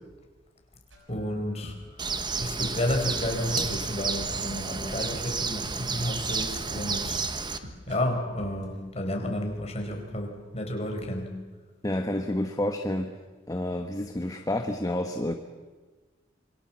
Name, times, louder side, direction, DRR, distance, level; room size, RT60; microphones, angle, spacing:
sound 1, 0.9-8.0 8.3-8.8, equal, 85° right, 5.3 m, -45 dB
voice 1, 1.1-1.7 2.4-11.3, left 1 dB, 35° left, 3 dB, 4.7 m, -31 dB
Bird, 2.0-7.6, right 4 dB, 25° right, 1.2 m, -31 dB
voice 2, 11.8-13.2 13.5-15.4, left 1 dB, 20° left, 5 dB, 1.2 m, -29 dB
27.0 x 23.5 x 7.4 m, 1.3 s
head